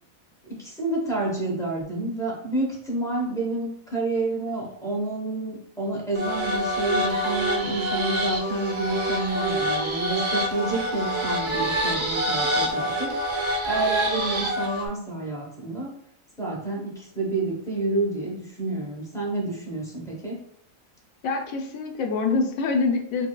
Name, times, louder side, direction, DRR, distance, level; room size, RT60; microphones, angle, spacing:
voice 1, 0.4-16.0 16.4-20.4, right 2 dB, 5° left, -3 dB, 0.6 m, -29 dB
sound 1, 6.1-14.9, equal, 45° right, 0.3 m, -26 dB
voice 2, 21.2-23.3, left 4 dB, 90° left, 3 dB, 1.0 m, -25 dB
4.4 x 2.1 x 2.2 m, 0.67 s
omnidirectional pair, 1.4 m